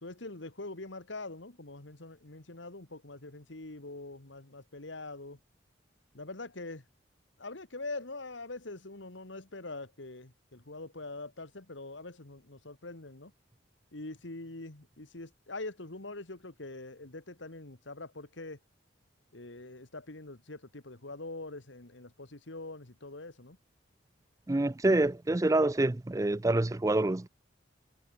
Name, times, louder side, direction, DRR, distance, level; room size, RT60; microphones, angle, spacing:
voice 1, 0.0-5.4 6.1-6.8 7.4-13.3 13.9-18.6 19.3-23.6, left 2 dB, 70° left, 2.0 m, -43 dB
voice 2, 24.5-27.3, right 2 dB, 15° right, 0.4 m, -27 dB
head